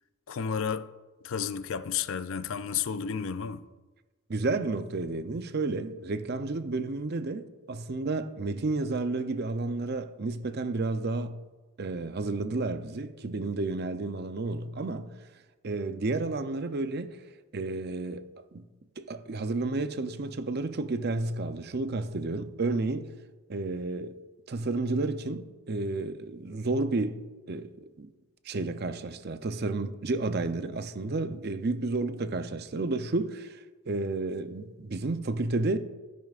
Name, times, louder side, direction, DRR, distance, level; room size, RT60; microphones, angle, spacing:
voice 1, 0.3-0.9 1.2-3.6, left 7 dB, 65° left, 0.4 m, -32 dB
voice 2, 4.3-11.3 11.8-15.2 15.6-17.2 17.5-18.2 18.5-18.7 19.0-23.1 23.5-24.1 24.5-28.1 28.4-35.8, right 3 dB, 45° right, 0.5 m, -31 dB
13.0 x 10.5 x 2.4 m
head